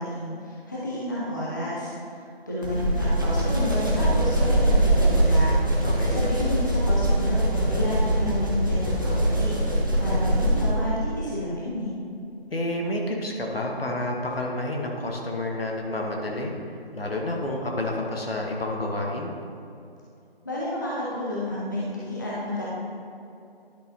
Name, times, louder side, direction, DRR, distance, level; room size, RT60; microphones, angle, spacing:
voice 1, 0.0-1.9 2.5-5.6 6.1-9.5 10.0-11.9 20.4-22.6, left 1 dB, 20° left, -7 dB, 0.7 m, -30 dB
sound 1, 2.6-10.9, right 1 dB, 20° right, 0.6 m, -22 dB
voice 2, 5.8-6.2 12.5-16.5 16.9-19.3, left 1 dB, 70° left, 0 dB, 1.5 m, -29 dB
10.5 x 5.8 x 2.9 m, 2.6 s
figure-of-eight pair, 160°, 31 cm